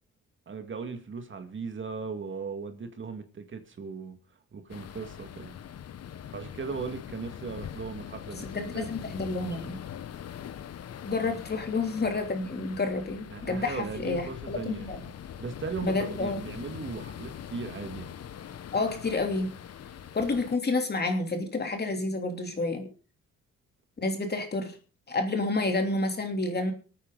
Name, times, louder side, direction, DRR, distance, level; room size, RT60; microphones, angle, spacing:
voice 1, 0.5-5.5 6.3-9.1 11.2-11.4 13.3-15.0 15.4-18.1, right 5 dB, 40° right, 7 dB, 2.0 m, -38 dB
sound 1, 4.7-20.6, left 9 dB, 55° left, 1.1 m, -42 dB
voice 2, 8.5-9.8 11.0-15.0 15.8-16.4 18.7-19.5 20.1-22.9 24.0-24.8 25.1-26.7, left 3 dB, 35° left, 4 dB, 3.1 m, -29 dB
26.0 x 9.2 x 3.9 m, 0.36 s
cardioid pair, 90°, 30 cm